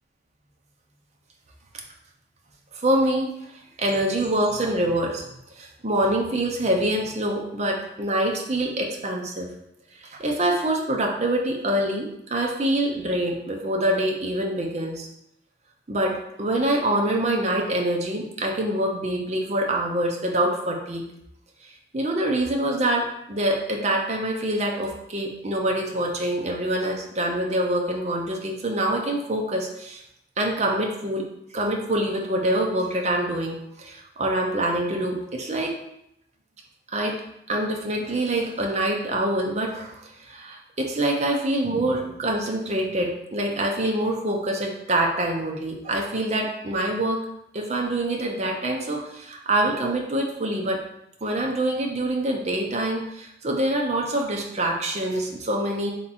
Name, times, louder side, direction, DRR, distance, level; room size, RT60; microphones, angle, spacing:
voice 1, 2.8-5.2 5.6-9.5 10.0-15.1 15.9-21.0 21.9-30.0 30.4-31.2 31.5-35.8 36.9-37.2 37.5-47.2 47.5-50.8 51.2-55.9, right 1 dB, 35° right, 0 dB, 0.6 m, -25 dB
3.5 x 2.9 x 4.1 m, 0.79 s
head